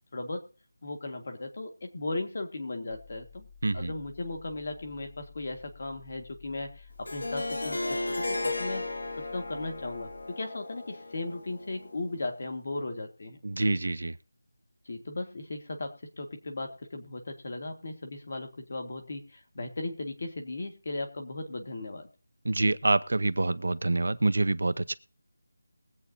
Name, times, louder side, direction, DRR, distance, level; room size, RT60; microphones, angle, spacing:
voice 1, 0.1-0.4 0.8-3.5 3.7-8.9 9.2-13.4 14.8-22.1, left 2 dB, 30° left, 5 dB, 1.7 m, -37 dB
sound 1, 2.9-10.3, left 5 dB, ahead, 0.5 m, -53 dB
voice 2, 3.6-3.9 13.4-14.2 22.4-24.9, right 2 dB, 50° right, 11 dB, 0.7 m, -26 dB
Harp, 7.0-12.0, left 2 dB, 65° left, 1.0 m, -35 dB
22.0 x 8.2 x 2.7 m, 0.36 s
figure-of-eight pair, 180°, 0 cm